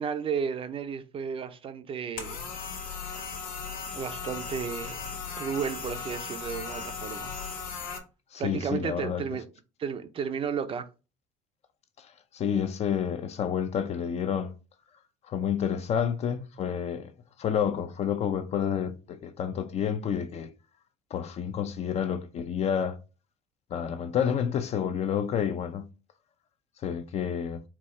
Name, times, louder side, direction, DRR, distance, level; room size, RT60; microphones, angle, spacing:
voice 1, 0.0-2.5 3.9-7.3 8.4-9.5 9.8-10.9, right 7 dB, 35° right, 0.5 m, -33 dB
sound 1, 2.2-8.0, left 5 dB, 65° left, 1.3 m, -37 dB
voice 2, 8.3-9.2 12.0-14.5 15.3-17.1 17.4-20.5 21.1-23.0 23.7-25.9 26.8-27.6, left 8 dB, 40° left, 0.5 m, -29 dB
4.5 x 2.4 x 4.2 m
cardioid pair, 125°, 16 cm